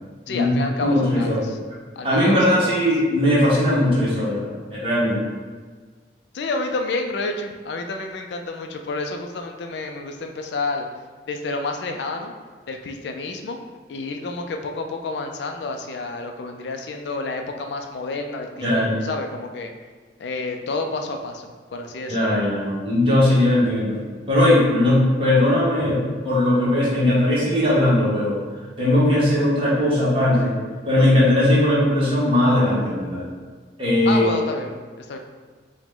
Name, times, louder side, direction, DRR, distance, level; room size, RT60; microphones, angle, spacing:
voice 1, 0.3-1.6 2.0-2.8 6.3-10.9 11.3-12.3 12.7-13.6 13.9-19.7 20.2-22.4 34.1-35.2, left 3 dB, 70° left, 4 dB, 0.4 m, -29 dB
voice 2, 0.8-1.5 2.0-5.2 18.6-19.0 22.1-24.0 24.3-26.0 26.2-28.4 28.8-30.5 30.8-33.2 33.8-34.2, left 1 dB, 30° right, -8 dB, 1.2 m, -19 dB
4.8 x 2.1 x 3.7 m, 1.5 s
head